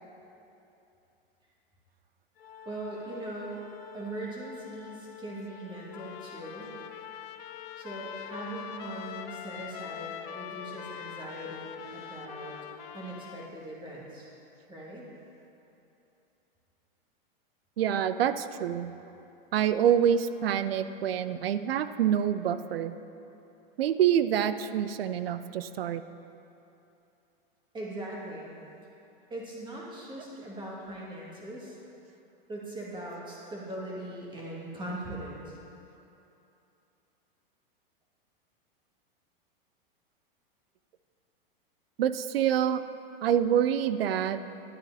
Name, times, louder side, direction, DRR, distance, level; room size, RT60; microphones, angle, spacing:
Organ, 2.4-13.2, left 8 dB, 80° left, 0.8 m, -49 dB
voice 1, 2.6-3.7 3.9-6.8 7.8-12.6 12.9-14.3 14.7-15.1 27.7-28.5 29.3-31.8 32.5-35.6, right 1 dB, 15° right, -5 dB, 2.0 m, -40 dB
Trumpet, 5.9-13.5, left 10 dB, 40° left, 0.4 m, -43 dB
voice 2, 17.8-18.9 19.5-22.9 23.8-26.0 42.0-42.8 43.2-44.4, right 9 dB, 80° right, 12 dB, 0.5 m, -26 dB
10.5 x 8.9 x 2.8 m, 2.8 s
hypercardioid pair, 115°, 29 cm